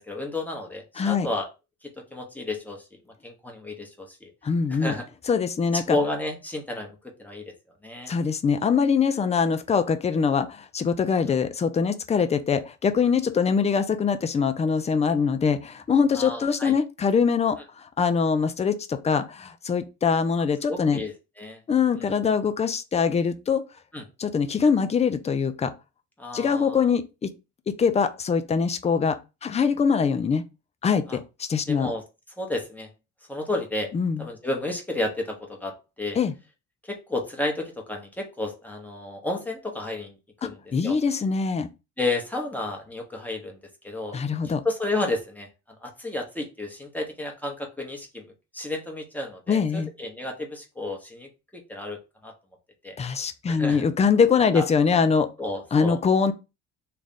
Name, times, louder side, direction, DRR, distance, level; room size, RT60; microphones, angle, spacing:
voice 1, 0.0-1.5 1.8-4.3 4.7-5.0 5.9-7.5 7.8-8.1 16.1-16.8 20.7-21.6 22.0-22.1 23.9-24.0 26.2-26.8 31.1-31.2 31.7-32.0 32.4-32.9 33.3-33.9 34.2-36.2 36.8-40.1 40.4-40.6 40.8-41.0 42.0-43.6 43.8-44.2 44.4-45.5 45.8-48.2 48.5-52.3 52.8-53.0 53.5-53.8 54.5-54.6 55.4-56.0, left 2 dB, 5° left, 1.0 m, -32 dB
voice 2, 1.0-1.3 4.4-4.9 5.3-6.0 8.1-21.0 21.7-23.6 24.2-25.7 26.3-27.3 27.7-30.4 30.8-31.9 33.9-34.3 36.2-36.3 40.7-41.7 44.1-44.6 49.5-49.9 53.0-55.3 55.7-56.3, left 6 dB, 20° left, 0.5 m, -23 dB
3.3 x 2.4 x 4.0 m
cardioid pair, 105°, 31 cm